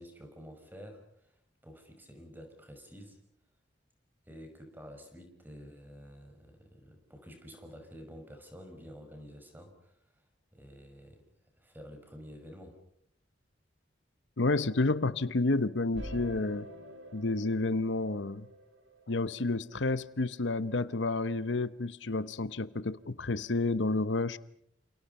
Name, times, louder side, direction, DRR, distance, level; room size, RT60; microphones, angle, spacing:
voice 1, 0.0-1.4 1.6-3.2 4.3-10.2 10.5-11.2 11.6-12.8, equal, 10° right, 5.8 m, -50 dB
voice 2, 14.4-16.7 17.1-18.5 19.1-24.4, left 3 dB, 80° left, 0.9 m, -30 dB
sound 1, 15.9-19.6 20.4-20.5, equal, 85° right, 5.5 m, -46 dB
29.5 x 28.0 x 5.5 m
head